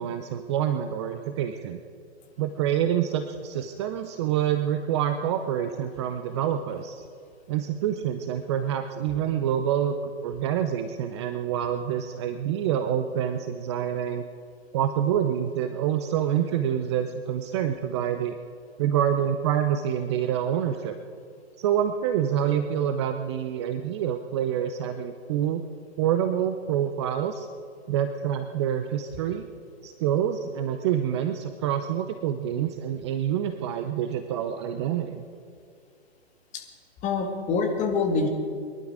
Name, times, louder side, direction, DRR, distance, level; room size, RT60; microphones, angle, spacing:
voice 1, 0.0-1.8 2.4-7.0 7.5-9.9 10.2-14.2 14.7-18.4 18.8-21.0 21.6-25.6 26.0-27.5 27.9-29.5 29.8-35.2, right 9 dB, 25° right, 8 dB, 0.6 m, -27 dB
voice 2, 37.0-38.3, left 4 dB, 20° left, 3 dB, 2.0 m, -25 dB
22.5 x 11.5 x 4.8 m, 2.3 s
figure-of-eight pair, 120°, 34 cm